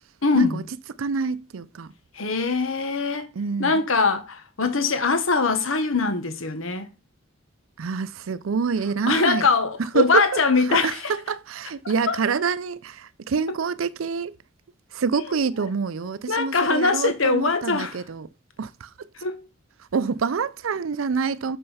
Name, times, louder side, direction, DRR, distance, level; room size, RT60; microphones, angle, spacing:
voice 1, 0.2-0.6 2.1-3.3 3.6-6.9 9.1-11.0 12.1-12.2 16.3-18.0 19.1-19.4, left 4 dB, 85° left, 1.3 m, -22 dB
voice 2, 1.0-1.9 3.4-3.8 7.8-9.5 9.8-10.4 10.7-14.4 14.9-18.3 18.6-19.1 19.9-21.6, right 5 dB, 85° right, 0.5 m, -26 dB
6.7 x 5.4 x 5.6 m
head